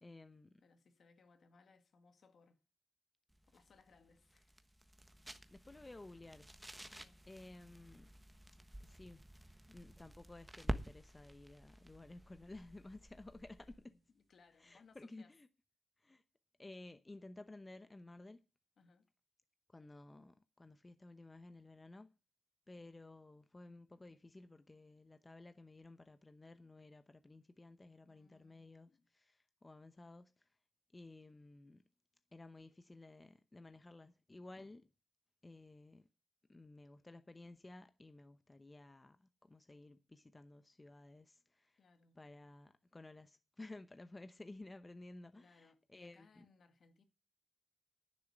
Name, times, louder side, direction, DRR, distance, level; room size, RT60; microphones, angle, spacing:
voice 1, 0.0-0.6 5.5-6.8 7.3-8.1 8.8-9.2 9.7-13.9 14.6-15.5 16.0-16.2 16.6-18.4 19.7-22.1 22.7-30.5 30.9-31.8 32.3-34.9 35.4-36.1 36.5-41.8 42.2-46.5, left 2 dB, 25° left, 0.9 m, -55 dB
voice 2, 0.6-2.6 3.5-4.6 5.5-5.6 6.8-7.2 13.9-15.3 18.8-19.1 28.1-29.1 41.8-42.2 45.3-47.0, left 4 dB, 70° left, 2.0 m, -68 dB
sound 1, 3.3-13.9, right 1 dB, 10° right, 1.3 m, -49 dB
10.5 x 6.7 x 7.9 m
cardioid pair, 70°, 0 cm